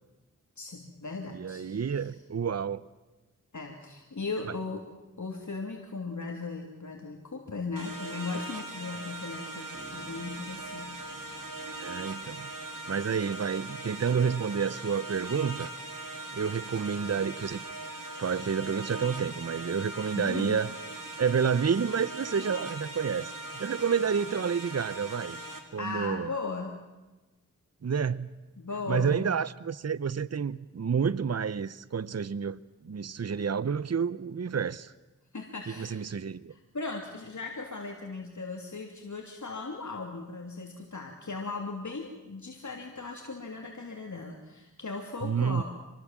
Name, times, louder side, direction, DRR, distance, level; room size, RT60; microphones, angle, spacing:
voice 1, 0.6-2.1 3.5-4.8 5.2-11.1 20.1-20.6 25.8-26.7 28.6-29.2 35.3-36.0 36.5-45.6, left 3 dB, 65° left, 2 dB, 3.0 m, -37 dB
voice 2, 1.3-2.8 11.8-12.5 12.9-15.7 16.3-17.6 18.2-20.7 21.2-23.3 23.6-25.4 25.7-26.3 27.8-28.4 28.9-34.9 35.7-36.5 45.2-45.6, right 6 dB, 55° right, 18 dB, 0.8 m, -29 dB
sound 1, 7.8-25.6, right 2 dB, 90° right, 3.4 m, -40 dB
Bass guitar, 9.7-13.2, right 5 dB, 30° right, 3.4 m, -56 dB
27.5 x 20.5 x 7.5 m, 1.1 s
wide cardioid pair, 50°, 32 cm